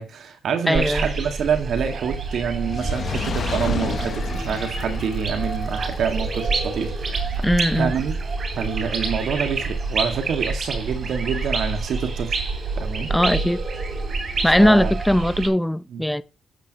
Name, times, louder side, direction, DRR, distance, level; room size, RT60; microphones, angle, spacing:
voice 1, 0.0-7.4 7.8-8.2 8.6-12.4 12.8-13.1 14.6-14.9 15.9-16.0, right 6 dB, 65° right, 2.0 m, -27 dB
voice 2, 0.7-1.1 7.4-7.9 13.1-13.6 14.4-16.2, left 1 dB, 5° left, 0.6 m, -19 dB
sound 1, 0.7-15.5, right 3 dB, 45° right, 2.9 m, -27 dB
Fire, 2.5-8.9 9.6-9.7, left 6 dB, 50° left, 1.0 m, -32 dB
11.5 x 8.5 x 3.1 m
cardioid pair, 90°, 0 cm